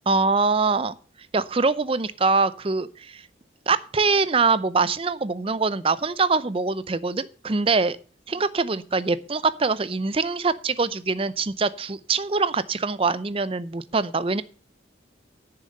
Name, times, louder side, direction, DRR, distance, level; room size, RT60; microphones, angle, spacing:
voice 1, 0.1-1.0 1.3-3.2 3.7-8.0 8.3-14.4, right 4 dB, 30° right, 16 dB, 0.6 m, -23 dB
10.0 x 7.0 x 6.6 m, 0.38 s
head